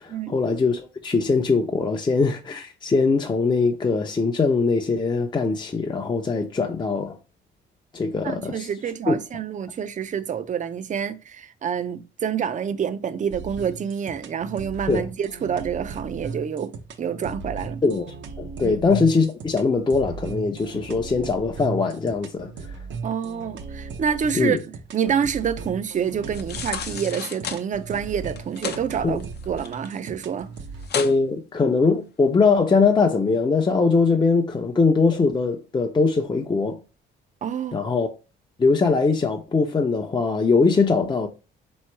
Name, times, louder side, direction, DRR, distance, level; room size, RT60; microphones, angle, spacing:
voice 1, 0.0-7.2 7.9-8.7 9.1-9.2 14.9-15.0 17.8-18.1 18.4-22.7 24.3-24.6 29.0-29.2 30.9-36.8 37.7-38.1 38.6-41.3, left 4 dB, 25° left, 0.6 m, -21 dB
voice 2, 8.2-17.8 18.6-18.8 23.0-24.6 24.9-30.5 37.4-37.8, right 7 dB, 40° right, 0.5 m, -27 dB
sound 1, 13.3-30.9, right 4 dB, 70° right, 0.8 m, -37 dB
sound 2, 26.3-27.6 28.3-28.8 29.2-30.1 30.4-30.5 30.8-31.2 31.6-31.7, left 7 dB, 55° left, 0.7 m, -32 dB
3.7 x 3.2 x 4.6 m
cardioid pair, 90°, 20 cm